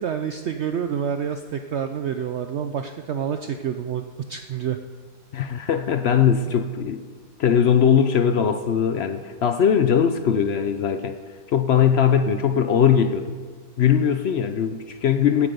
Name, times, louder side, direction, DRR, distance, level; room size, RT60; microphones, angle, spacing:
voice 1, 0.0-4.8 6.4-6.5, right 8 dB, 80° right, 7 dB, 0.6 m, -28 dB
voice 2, 5.3-7.0 7.4-11.2 11.5-13.4 13.8-15.5, left 8 dB, 65° left, 9 dB, 0.6 m, -20 dB
16.5 x 8.4 x 5.3 m, 1.6 s
omnidirectional pair, 1.8 m